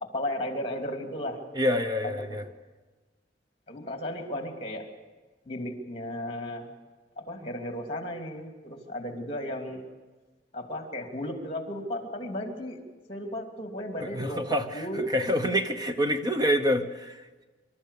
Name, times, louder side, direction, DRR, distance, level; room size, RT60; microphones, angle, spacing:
voice 1, 0.0-1.4 2.0-2.4 3.7-4.9 5.4-6.7 7.2-9.9 10.5-12.8 13.1-15.1, left 1 dB, 30° left, 3 dB, 2.8 m, -35 dB
voice 2, 1.5-2.4 14.1-17.2, equal, 20° right, 7 dB, 1.0 m, -27 dB
26.0 x 13.0 x 8.4 m, 1.3 s
head